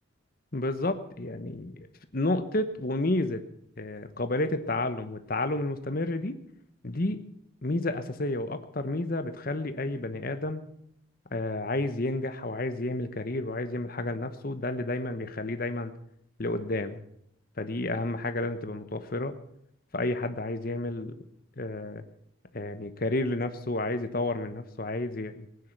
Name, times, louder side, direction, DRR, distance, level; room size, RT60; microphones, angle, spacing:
voice 1, 0.5-1.9 2.1-3.4 3.8-6.4 6.8-7.2 7.6-10.6 11.3-15.9 16.4-17.0 17.6-19.3 19.9-21.1 21.6-22.0 22.5-25.5, left 2 dB, 45° left, 10 dB, 1.0 m, -31 dB
18.5 x 9.7 x 6.0 m, 0.72 s
head